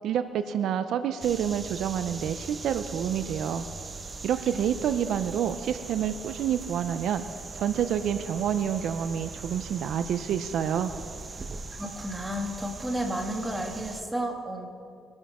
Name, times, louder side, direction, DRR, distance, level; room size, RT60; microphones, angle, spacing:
voice 1, 0.0-3.6 4.2-7.2 7.5-10.9, right 9 dB, 75° right, 10 dB, 0.6 m, -28 dB
sound 1, 1.2-14.0, right 3 dB, 35° right, 0.8 m, -41 dB
voice 2, 4.3-4.7 11.7-14.7, equal, 10° right, 1 dB, 2.3 m, -32 dB
22.5 x 11.5 x 3.7 m, 2.4 s
cardioid pair, 90°, 0 cm